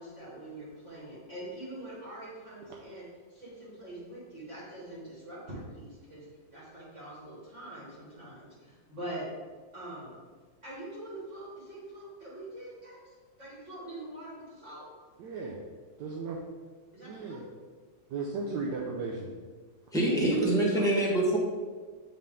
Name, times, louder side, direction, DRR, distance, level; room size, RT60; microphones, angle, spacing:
voice 1, 0.0-9.3 9.7-10.2 10.6-14.9 16.9-17.5 20.7-21.0, right 1 dB, 40° right, -8 dB, 1.8 m, -44 dB
voice 2, 15.2-15.6 16.0-16.4 17.0-17.4 18.1-19.3, right 4 dB, 75° right, -2 dB, 1.3 m, -35 dB
voice 3, 19.9-21.4, right 1 dB, ahead, -4 dB, 1.0 m, -25 dB
7.8 x 3.8 x 3.6 m, 1.4 s
omnidirectional pair, 2.0 m